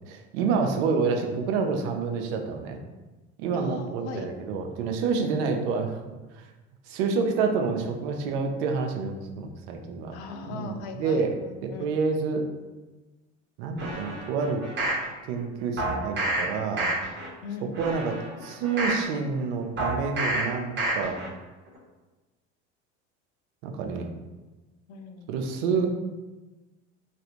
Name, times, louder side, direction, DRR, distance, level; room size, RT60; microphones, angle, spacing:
voice 1, 0.1-2.8 3.4-6.0 6.9-10.1 10.5-11.4 11.6-12.4 13.6-14.6 15.3-16.9 17.8-18.2 18.4-21.2 23.6-24.1 25.3-25.9, right 5 dB, 75° right, 4 dB, 0.6 m, -28 dB
voice 2, 3.5-4.3 5.2-5.5 10.1-12.0 17.4-17.7 24.9-25.3, left 5 dB, 75° left, 5 dB, 0.5 m, -39 dB
sound 1, 13.8-15.0 15.8-16.4 16.8-17.3 17.7-19.0 19.8-20.4 20.8-21.3 21.7-21.8, right 2 dB, 30° right, 1.1 m, -29 dB
3.1 x 2.5 x 2.9 m, 1.2 s
supercardioid pair, 90°, 35 cm